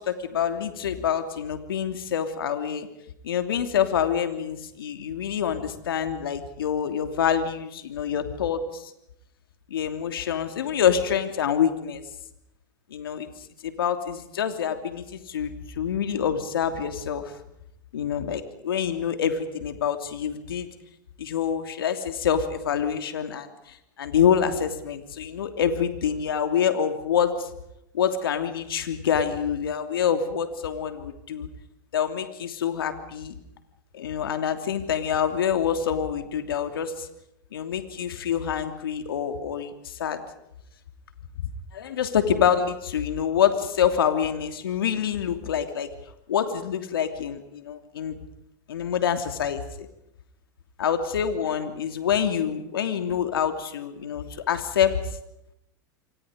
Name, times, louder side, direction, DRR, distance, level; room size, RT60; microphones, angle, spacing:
voice 1, 0.0-2.9 3.2-8.9 9.7-12.0 12.9-13.3 13.6-17.3 17.9-20.7 21.2-27.5 27.9-31.5 31.9-33.3 33.9-37.1 37.5-40.2 41.7-45.9 46.3-48.2 48.7-49.9 50.8-55.0, left 8 dB, 90° left, 7 dB, 3.0 m, -26 dB
28.5 x 24.5 x 5.2 m, 0.80 s
hypercardioid pair, 120°, 12 cm